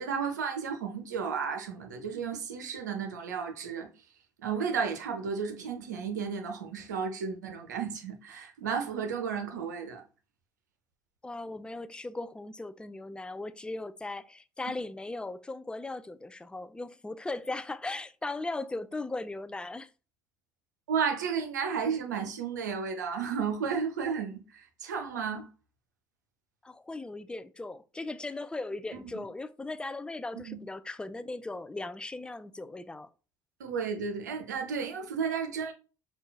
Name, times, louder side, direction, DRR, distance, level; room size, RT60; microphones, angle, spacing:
voice 1, 0.0-3.9 4.4-10.0 20.9-25.5 29.1-29.2 30.4-30.6 33.6-35.7, right 6 dB, 85° right, 0.6 m, -33 dB
voice 2, 11.2-19.9 26.6-33.1, left 2 dB, 10° left, 0.3 m, -38 dB
5.4 x 2.2 x 2.3 m
hypercardioid pair, 60°, 9 cm